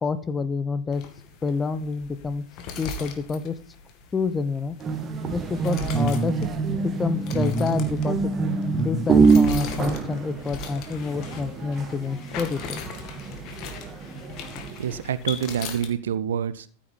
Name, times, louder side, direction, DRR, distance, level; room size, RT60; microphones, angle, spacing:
voice 1, 0.0-1.0 1.4-2.5 2.8-3.6 4.1-4.8 5.3-6.5 6.8-8.3 8.8-12.8, left 4 dB, 15° left, 13 dB, 0.9 m, -28 dB
sound 1, 0.9-15.9, left 4 dB, 40° left, 2.2 m, -39 dB
sound 2, 4.8-15.0, right 4 dB, 25° right, 1.8 m, -25 dB
voice 2, 14.8-16.7, right 9 dB, 60° right, 15 dB, 0.8 m, -27 dB
14.5 x 8.5 x 3.9 m, 0.38 s
figure-of-eight pair, 90°, 0 cm